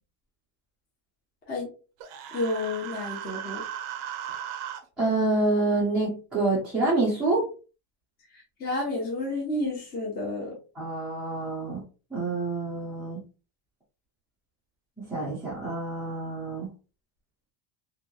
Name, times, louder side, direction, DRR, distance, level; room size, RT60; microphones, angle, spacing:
Human voice, 2.0-4.8, right 10 dB, 55° right, 0.5 m, -37 dB
voice 1, 2.3-3.6 8.3-10.5, left 2 dB, 20° left, 0.7 m, -30 dB
voice 2, 5.0-7.4 10.8-11.8 12.1-13.2 15.0-16.7, right 2 dB, ahead, 0.3 m, -27 dB
2.9 x 2.7 x 2.2 m
cardioid pair, 170°, 49 cm